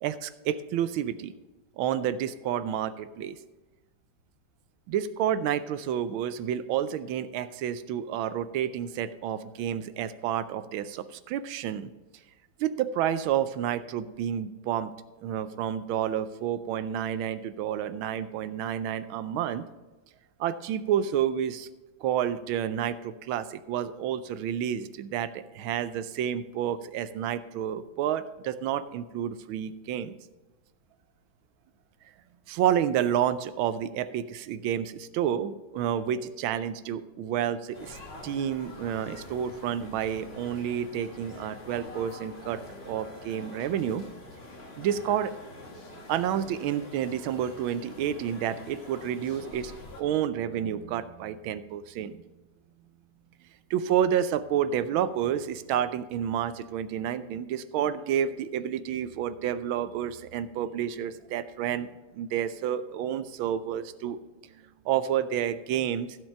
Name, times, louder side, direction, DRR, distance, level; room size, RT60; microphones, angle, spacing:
voice 1, 0.0-1.3 1.8-3.4 4.9-11.9 12.6-14.9 15.2-19.7 20.4-21.7 22.0-30.2 32.5-38.0 38.2-42.6 42.9-44.0 44.8-45.3 46.1-52.2 53.7-61.9 62.1-64.5 64.8-66.2, right 9 dB, 80° right, 13 dB, 1.4 m, -30 dB
sound 1, 37.7-50.0, left 2 dB, 35° left, 1.5 m, -45 dB
15.0 x 5.4 x 5.7 m, 1.2 s
omnidirectional pair, 2.3 m